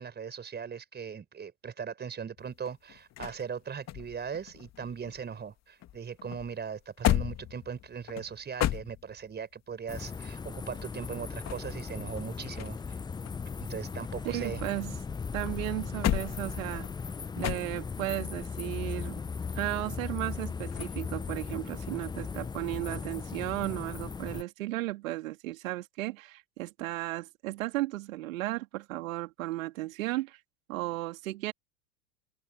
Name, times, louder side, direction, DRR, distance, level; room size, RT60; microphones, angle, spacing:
voice 1, 0.0-12.8 13.7-14.6, right 6 dB, 25° right, 5.0 m, -39 dB
sound 1, 2.4-5.5 5.8-9.4 11.2-13.0 13.3-15.0 15.5-18.1 20.7-21.0, left 13 dB, 35° left, 2.4 m, -35 dB
sound 2, 9.9-24.4, left 5 dB, 10° left, 0.6 m, -37 dB
voice 2, 14.2-15.0 15.3-16.9 17.4-19.2 19.5-30.4 30.7-31.5, right 17 dB, 65° right, 3.3 m, -35 dB
open air
hypercardioid pair, 90°, 43 cm